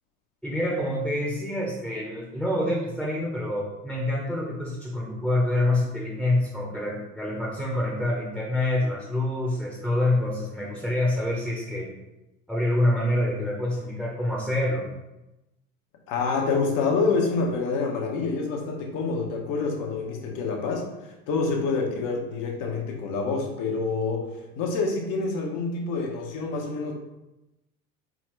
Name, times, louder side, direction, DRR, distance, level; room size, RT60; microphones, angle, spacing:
voice 1, 0.4-11.9 12.5-14.9, left 1 dB, ahead, -4 dB, 1.1 m, -26 dB
voice 2, 16.1-24.3 24.6-26.9, left 4 dB, 50° left, 1 dB, 1.2 m, -27 dB
4.1 x 3.8 x 3.2 m, 0.96 s
hypercardioid pair, 75°, 42 cm